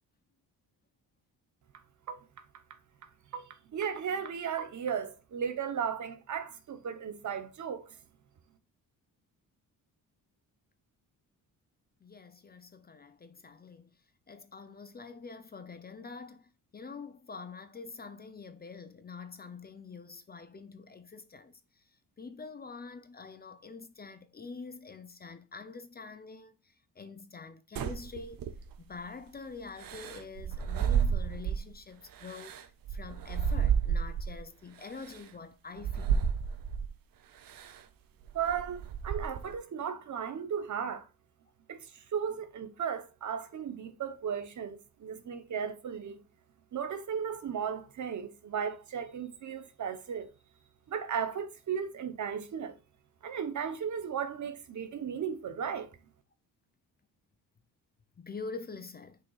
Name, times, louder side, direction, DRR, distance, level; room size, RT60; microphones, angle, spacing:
voice 1, 3.3-8.0 38.3-41.1 41.7-46.2 46.7-50.3 50.9-52.8 53.2-55.9, right 7 dB, 55° right, 1.0 m, -35 dB
voice 2, 12.0-13.9 14.3-21.5 22.2-26.5 27.0-28.4 28.8-36.2 58.2-59.2, left 4 dB, 25° left, 0.6 m, -46 dB
sound 1, 27.8-28.9 29.8-31.7 32.2-34.4 35.0-35.2 35.8-36.9 37.5-37.8 38.2-39.6, right 7 dB, 70° right, 0.8 m, -31 dB
6.8 x 5.7 x 2.4 m
cardioid pair, 125°, 36 cm